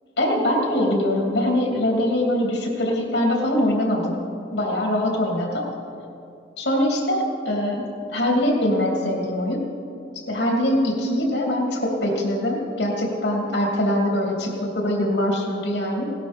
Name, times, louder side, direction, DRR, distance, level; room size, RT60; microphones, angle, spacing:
voice 1, 0.2-4.2 4.5-5.6 6.6-9.7 10.3-16.1, left 1 dB, 90° left, 0 dB, 2.8 m, -23 dB
17.5 x 12.0 x 5.2 m, 2.7 s
head